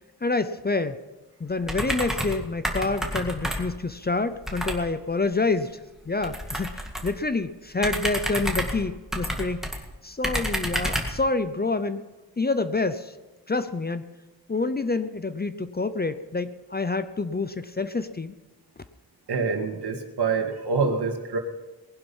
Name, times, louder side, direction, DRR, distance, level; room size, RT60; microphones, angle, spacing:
voice 1, 0.2-1.0 1.4-5.8 6.1-9.7 10.0-12.0 12.4-13.1 13.5-14.0 14.5-18.3, left 3 dB, 25° left, 11 dB, 0.5 m, -27 dB
sound 1, 1.6-2.4 2.6-3.8 4.5-4.8 6.2-7.2 7.8-9.8 10.2-11.2, equal, ahead, 1.9 m, -29 dB
voice 2, 19.3-21.4, right 4 dB, 75° right, 3 dB, 2.3 m, -26 dB
19.5 x 11.5 x 5.5 m, 1.1 s
wide cardioid pair, 180°, 40 cm